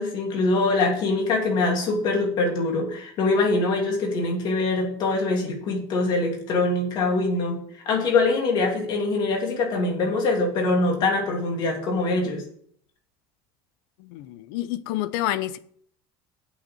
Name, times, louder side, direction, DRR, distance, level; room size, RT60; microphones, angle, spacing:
voice 1, 0.0-7.6 7.9-12.4, left 3 dB, 40° left, 2.8 m, -23 dB
voice 2, 14.0-15.6, left 14 dB, 75° left, 0.7 m, -28 dB
7.9 x 6.5 x 7.0 m
cardioid pair, 165°, 11 cm